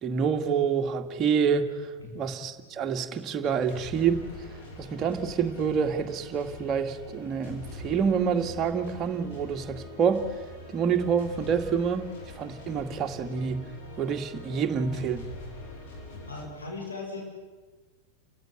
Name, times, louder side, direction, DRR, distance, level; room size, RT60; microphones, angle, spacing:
voice 1, 0.0-4.2 4.8-10.2 10.7-12.1 12.4-13.7 14.0-15.3, right 6 dB, 30° right, 5 dB, 2.1 m, -27 dB
sound 1, 3.4-16.5, left 2 dB, 55° left, 5.7 m, -43 dB
voice 2, 16.3-17.2, left 3 dB, 75° left, -1 dB, 7.6 m, -38 dB
29.5 x 15.5 x 9.5 m, 1.3 s
figure-of-eight pair, 90°, 0 cm